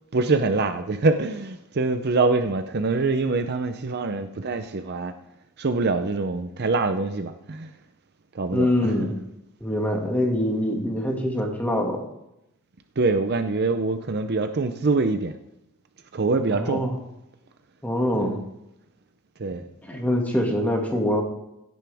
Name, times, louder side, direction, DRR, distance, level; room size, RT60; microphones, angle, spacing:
voice 1, 0.1-5.1 5.6-7.7 8.3-9.1 13.0-15.3 16.1-16.8 18.1-18.4 19.4-19.6, right 3 dB, 45° right, 8 dB, 0.6 m, -24 dB
voice 2, 8.5-9.2 9.6-12.0 16.5-17.0 17.8-18.4 19.8-21.2, left 1 dB, 5° left, 0 dB, 2.1 m, -24 dB
17.0 x 9.4 x 3.5 m, 0.86 s
head